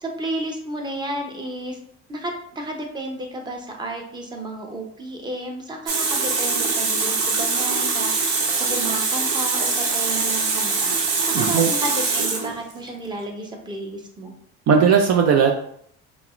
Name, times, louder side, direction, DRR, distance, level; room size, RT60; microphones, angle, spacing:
voice 1, 0.0-1.8 2.1-14.3, right 1 dB, 15° right, 2 dB, 0.7 m, -32 dB
Water tap faucet, 5.9-12.9, right 4 dB, 80° right, 0.9 m, -23 dB
voice 2, 11.3-11.7 14.7-15.5, right 6 dB, 55° right, 4 dB, 0.5 m, -17 dB
5.7 x 2.1 x 2.5 m, 0.67 s
supercardioid pair, 95°, 32 cm